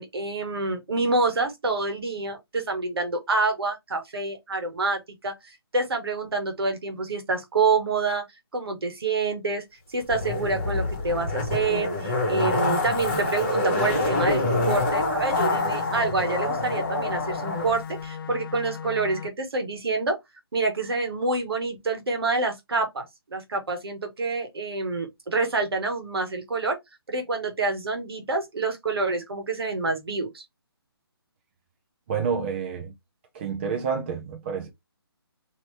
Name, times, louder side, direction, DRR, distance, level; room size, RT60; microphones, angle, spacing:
voice 1, 0.0-5.3 5.7-8.2 8.5-9.6 9.9-20.2 20.5-23.0 23.3-26.8 27.1-30.4, right 3 dB, 70° right, 1.3 m, -27 dB
Zipper (clothing), 10.1-17.7 18.0-18.1, left 2 dB, 25° left, 1.3 m, -26 dB
sound 1, 15.3-19.3, left 7 dB, 60° left, 0.4 m, -37 dB
voice 2, 32.1-32.9 33.3-34.7, right 6 dB, 25° right, 0.6 m, -29 dB
2.9 x 2.8 x 3.2 m
hypercardioid pair, 160°, 13 cm